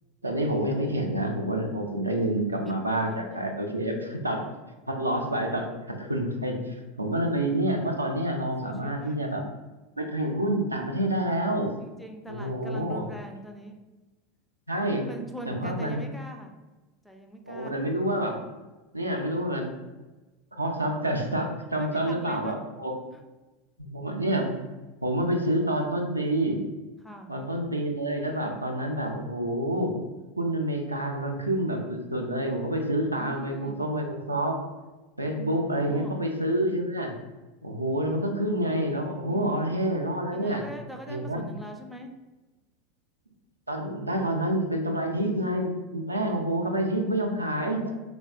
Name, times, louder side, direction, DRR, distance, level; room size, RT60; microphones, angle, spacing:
voice 1, 0.2-4.5 4.9-9.4 10.0-11.7 12.3-13.0 14.7-15.1 15.5-16.1 17.4-18.4 18.9-19.7 20.6-23.0 23.8-24.6 25.0-26.6 27.3-30.0 30.4-34.6 35.2-37.1 37.6-40.7 41.1-41.4 43.7-47.9, right 1 dB, 85° right, 2 dB, 0.3 m, -28 dB
voice 2, 8.4-9.2 11.8-13.8 15.1-16.5 17.0-17.9 21.8-22.6 23.1-23.2 27.0-27.3 33.2-33.9 35.7-36.2 39.3-39.7 40.3-42.1, right 1 dB, ahead, 3 dB, 0.3 m, -42 dB
3.4 x 2.1 x 2.3 m, 1.2 s
figure-of-eight pair, 85°, 0 cm